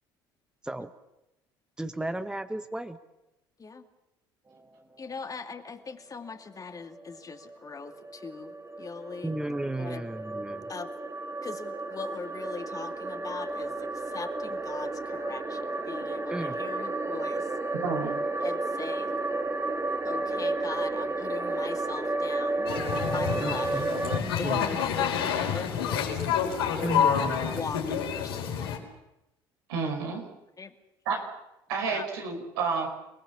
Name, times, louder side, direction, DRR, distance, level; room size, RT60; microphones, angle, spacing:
voice 1, 1.8-3.0 9.2-10.7 16.3-16.6 23.4-23.8 24.4-24.7 26.8-27.5, right 1 dB, 5° right, 10 dB, 1.3 m, -34 dB
voice 2, 5.0-9.3 9.8-10.0 10.7-10.9 11.4-17.5 18.4-19.1 20.0-22.7 23.0-23.9 24.4-26.2 27.5-28.7 30.6-30.7 31.9-32.1, left 5 dB, 30° left, 6 dB, 2.5 m, -40 dB
sound 1, 7.0-24.2, right 2 dB, 20° right, 2.2 m, -32 dB
voice 3, 17.8-18.2 29.7-30.3 31.1-31.2 31.7-32.9, right 5 dB, 80° right, 2 dB, 5.6 m, -30 dB
sound 2, 22.7-28.8, left 7 dB, 85° left, 4.6 m, -28 dB
28.5 x 19.0 x 7.2 m, 0.93 s
hypercardioid pair, 65°, 12 cm